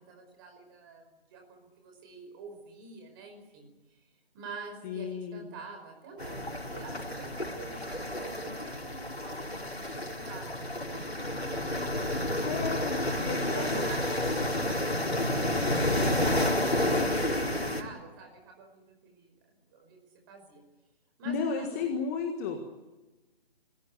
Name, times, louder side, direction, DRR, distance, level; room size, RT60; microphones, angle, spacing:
voice 1, 0.0-4.0 4.3-10.5 10.9-12.5 13.1-19.4 19.7-20.0 20.3-20.6 21.2-21.8, right 4 dB, 20° right, 3 dB, 5.2 m, -47 dB
voice 2, 4.8-5.4 12.4-13.8 15.4-15.6 21.2-22.6, left 5 dB, 15° left, 4 dB, 1.6 m, -34 dB
sound 1, 6.2-17.8, left 1 dB, 80° left, 4.4 m, -30 dB
26.0 x 15.5 x 9.8 m, 1.1 s
figure-of-eight pair, 145°, 30 cm